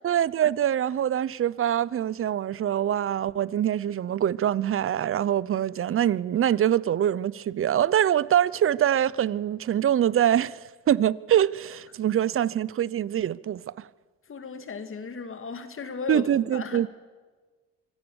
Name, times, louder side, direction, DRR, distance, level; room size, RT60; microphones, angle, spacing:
voice 1, 0.0-13.9 16.1-16.9, right 10 dB, 45° right, 0.6 m, -24 dB
voice 2, 14.3-16.9, left 5 dB, 45° left, 2.2 m, -36 dB
25.5 x 15.0 x 7.1 m
cardioid pair, 90°, 30 cm